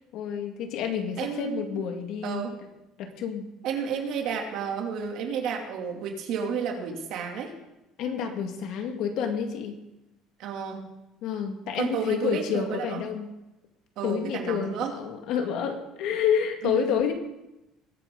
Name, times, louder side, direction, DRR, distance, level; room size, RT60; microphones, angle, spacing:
voice 1, 0.1-2.5 3.0-3.4 8.0-9.8 11.2-13.3 14.0-17.1, left 7 dB, 65° left, 4 dB, 2.0 m, -29 dB
voice 2, 1.2-1.6 2.2-2.6 3.6-7.5 10.4-10.9 11.8-13.0 14.0-14.9 16.6-16.9, right 6 dB, 60° right, 2 dB, 2.8 m, -31 dB
21.0 x 9.1 x 3.9 m, 0.94 s
cardioid pair, 145°, 0 cm